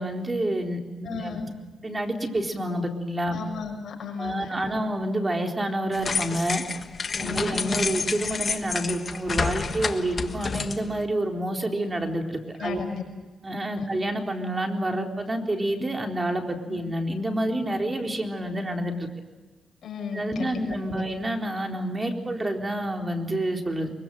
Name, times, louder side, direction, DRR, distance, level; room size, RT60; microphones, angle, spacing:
voice 1, 0.0-1.4 1.8-3.4 4.2-6.6 7.1-12.8 13.4-19.1 20.1-23.9, right 1 dB, 25° right, 3 dB, 4.1 m, -28 dB
voice 2, 1.0-1.4 3.3-4.5 7.2-7.7 12.6-13.0 13.8-13.9 16.7-16.8 19.8-20.6 20.9-21.0, left 6 dB, 70° left, 2 dB, 6.1 m, -34 dB
sound 1, 5.9-11.0, left 5 dB, 45° left, 1.5 m, -29 dB
23.5 x 23.0 x 7.8 m, 1.3 s
cardioid pair, 75°, 0 cm